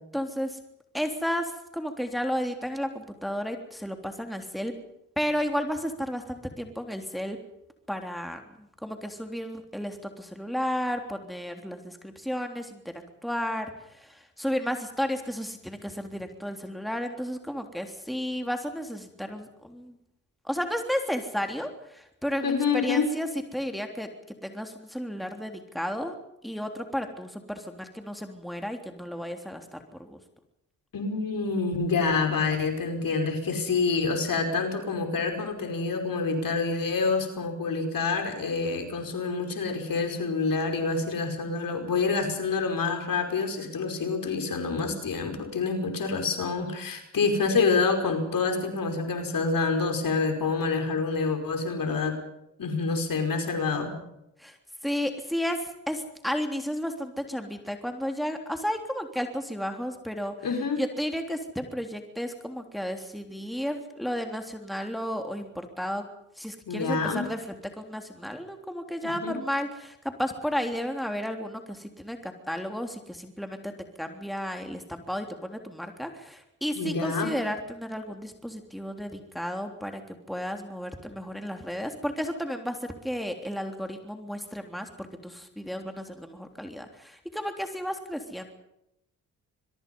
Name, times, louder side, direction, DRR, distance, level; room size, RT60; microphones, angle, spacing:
voice 1, 0.1-0.6 0.9-4.8 5.2-7.4 7.9-19.9 20.4-24.1 24.4-26.1 26.4-30.2 54.4-54.6 54.8-60.3 60.8-66.0 66.4-73.7 74.0-80.0 80.3-88.5, equal, ahead, 5 dB, 3.5 m, -33 dB
voice 2, 22.4-23.1 30.9-52.2 52.6-53.9 60.4-60.8 66.7-67.2 69.0-69.4 76.8-77.3, left 4 dB, 60° left, 5 dB, 5.2 m, -27 dB
26.0 x 23.0 x 5.6 m, 0.82 s
hypercardioid pair, 45°, 38 cm